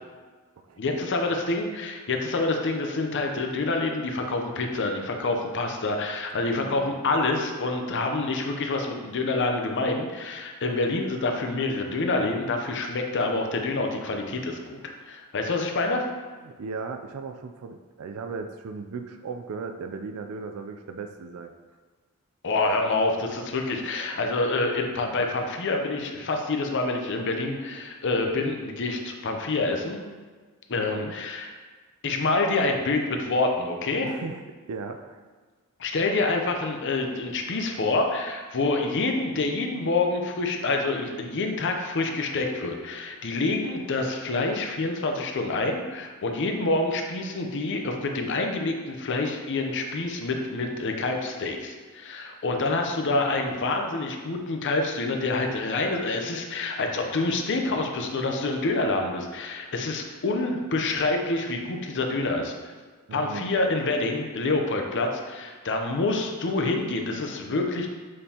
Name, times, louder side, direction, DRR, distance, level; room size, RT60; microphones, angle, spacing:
voice 1, 0.8-14.8 15.1-16.1 22.4-30.0 30.7-31.5 32.0-34.1 35.8-62.5 63.1-67.9, left 3 dB, 55° left, 3 dB, 0.6 m, -27 dB
voice 2, 6.6-6.9 16.4-21.5 30.7-31.1 34.0-34.4 34.7-35.2 63.1-63.5, right 4 dB, 75° right, 6 dB, 0.4 m, -37 dB
6.6 x 5.3 x 2.9 m, 1.4 s
head